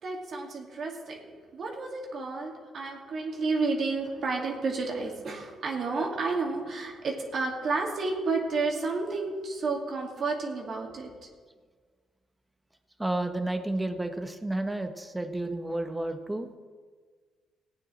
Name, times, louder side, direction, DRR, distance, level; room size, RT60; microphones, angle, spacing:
voice 1, 0.0-11.1, right 3 dB, 55° right, 0 dB, 2.5 m, -31 dB
voice 2, 13.0-16.5, right 1 dB, 10° right, 7 dB, 1.3 m, -31 dB
17.5 x 8.9 x 4.4 m, 1.5 s
cardioid pair, 90°, 0 cm